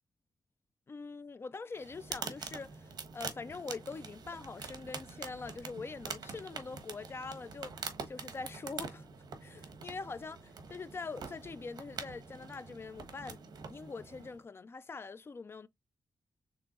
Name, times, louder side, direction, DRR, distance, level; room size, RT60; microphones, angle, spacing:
voice 1, 0.9-9.1 9.4-13.4 13.7-15.7, left 4 dB, 35° left, 0.5 m, -44 dB
sound 1, 1.7-14.4, right 5 dB, 70° right, 1.2 m, -45 dB
6.8 x 3.0 x 2.5 m
wide cardioid pair, 130°, 7 cm